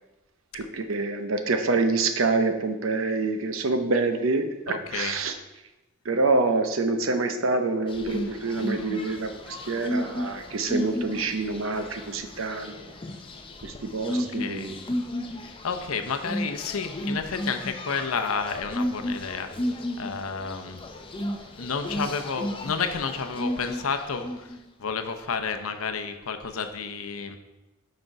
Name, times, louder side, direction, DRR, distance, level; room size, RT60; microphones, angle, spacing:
voice 1, 0.5-5.3 6.0-12.9 13.6-14.8, right 3 dB, 65° right, 7 dB, 0.7 m, -26 dB
voice 2, 4.7-5.2 14.1-14.8 15.3-20.8 21.6-27.4, left 5 dB, 80° left, 7 dB, 0.7 m, -31 dB
sound 1, 7.9-24.6, left 1 dB, 25° left, 0.6 m, -33 dB
6.5 x 5.2 x 4.7 m, 1.0 s
head